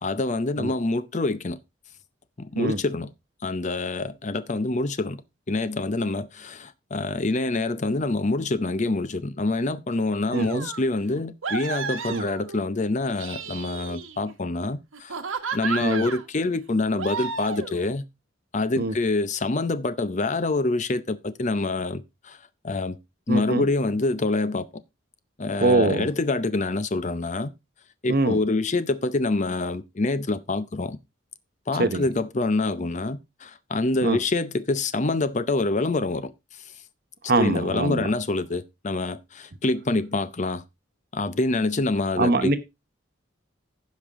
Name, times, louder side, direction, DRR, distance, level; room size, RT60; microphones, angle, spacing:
voice 1, 0.0-1.6 2.4-3.1 3.4-5.2 5.5-15.2 15.5-18.0 18.5-22.4 22.6-23.0 23.3-24.7 25.4-27.5 28.0-31.0 31.7-36.3 37.4-40.6 41.1-42.6, left 2 dB, 35° left, 0.6 m, -26 dB
voice 2, 10.3-10.7 12.1-12.2 15.8-16.0 18.8-18.9 23.3-23.7 25.6-26.1 28.1-28.4 31.7-32.1 34.0-34.2 37.2-38.1 42.2-42.6, right 2 dB, 50° right, 0.9 m, -23 dB
sound 1, 10.3-10.8 11.4-12.6 13.0-14.3 14.9-16.2 17.0-17.8, right 5 dB, 80° right, 1.3 m, -33 dB
15.0 x 5.4 x 3.6 m
head